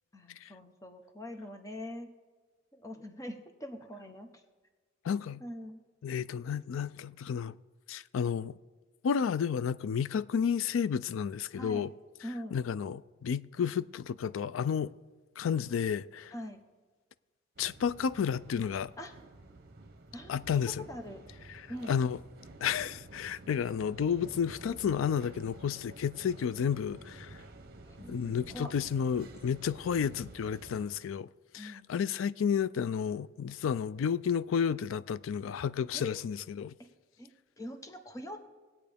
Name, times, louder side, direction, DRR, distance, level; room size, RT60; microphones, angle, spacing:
voice 1, 0.1-2.1 2.7-4.3 5.4-5.8 11.6-11.9 12.2-12.6 16.3-16.6 19.0-19.1 20.1-21.2 21.7-21.9 27.9-28.7 31.6-31.9 35.9-36.2 36.8-36.9 37.2-37.3 37.6-38.4, equal, 15° left, 0.9 m, -43 dB
voice 2, 5.0-5.4 6.0-7.6 7.9-8.6 9.0-11.9 12.5-14.9 15.4-16.3 17.6-18.9 20.3-20.9 21.5-22.2 22.6-27.4 28.1-31.3 31.5-36.7, left 7 dB, 85° left, 0.3 m, -31 dB
sound 1, 17.6-30.9, right 2 dB, 50° right, 1.0 m, -51 dB
21.0 x 8.5 x 3.5 m
head